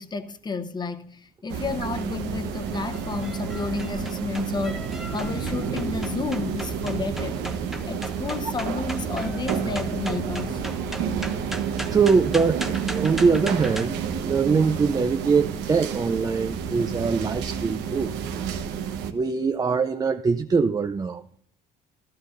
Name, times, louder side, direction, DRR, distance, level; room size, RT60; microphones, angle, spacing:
voice 1, 0.0-7.4 7.8-10.6, left 4 dB, 25° left, 0.9 m, -31 dB
sound 1, 1.5-19.1, right 7 dB, 90° right, 1.1 m, -30 dB
sound 2, 2.6-13.9, equal, ahead, 0.8 m, -39 dB
voice 2, 11.9-18.1 19.1-21.4, right 5 dB, 20° right, 0.4 m, -23 dB
14.5 x 12.5 x 2.6 m
cardioid pair, 110°, 17 cm